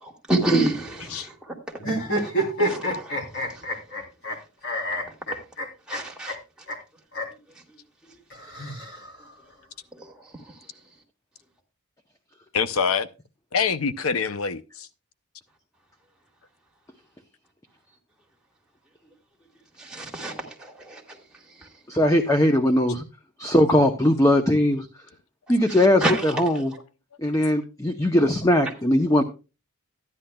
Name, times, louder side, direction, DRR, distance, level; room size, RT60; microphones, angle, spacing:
voice 1, 0.0-1.3 2.2-3.2 5.9-6.4 19.8-21.0 26.0-26.2, right 2 dB, 5° right, 1.9 m, -27 dB
sound 1, 1.8-4.4 4.6-6.0 6.3-6.4 6.7-6.8 7.1-7.3 8.3-9.3, right 1 dB, 55° left, 3.3 m, -28 dB
voice 2, 12.5-13.1 13.5-14.9, left 6 dB, 75° left, 0.5 m, -25 dB
voice 3, 21.9-23.0 23.4-24.9 25.5-26.7 27.2-29.2, left 1 dB, 15° left, 0.7 m, -20 dB
14.0 x 10.0 x 2.2 m
head